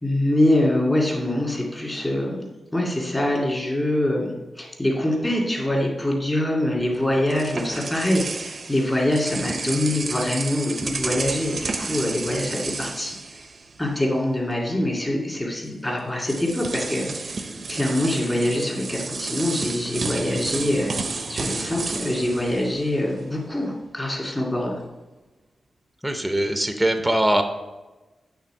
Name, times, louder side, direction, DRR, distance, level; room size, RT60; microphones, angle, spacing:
voice 1, 0.0-2.4 2.7-13.5 13.8-20.9 21.3-24.8, left 1 dB, 15° left, -2 dB, 1.9 m, -24 dB
sound 1, 6.8-14.1 14.3-14.5 15.7-15.8 16.2-23.4, right 3 dB, 45° right, 0.5 m, -32 dB
voice 2, 26.0-27.4, right 1 dB, 5° right, 6 dB, 0.6 m, -21 dB
8.5 x 3.5 x 4.6 m, 1.1 s
wide cardioid pair, 125°, 0 cm